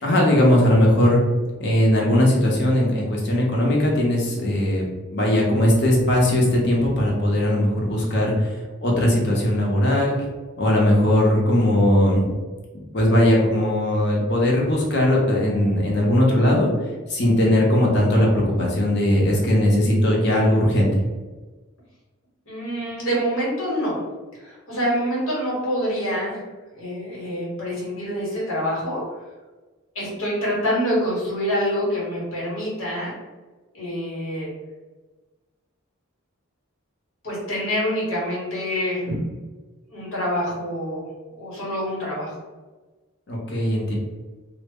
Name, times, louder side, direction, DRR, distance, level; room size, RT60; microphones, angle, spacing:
voice 1, 0.0-1.2 1.6-4.9 5.1-10.2 10.6-12.3 12.9-16.7 17.1-20.9 43.3-43.9, left 1 dB, 55° left, -2 dB, 0.7 m, -19 dB
voice 2, 22.5-24.0 24.4-26.4 26.8-29.0 29.9-33.1 33.7-34.5 37.2-39.2 39.9-41.0 41.4-42.4, equal, 75° left, -5 dB, 1.0 m, -26 dB
2.0 x 2.0 x 3.4 m, 1.2 s
head